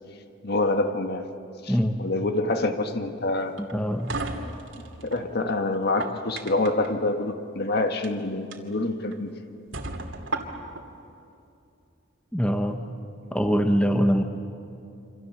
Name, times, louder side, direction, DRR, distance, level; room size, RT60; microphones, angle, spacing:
voice 1, 0.4-1.3 1.6-3.6 5.0-9.3, left 2 dB, 50° left, 6 dB, 1.6 m, -26 dB
voice 2, 1.7-2.0 3.6-4.2 12.3-12.9 13.3-14.2, equal, 5° left, 5 dB, 0.9 m, -23 dB
sound 1, 3.6-5.2 5.8-6.9 7.9-8.1 8.5-8.6 9.1-9.2 9.7-10.8, right 3 dB, 70° right, 2.5 m, -34 dB
28.0 x 26.0 x 7.6 m, 2.7 s
head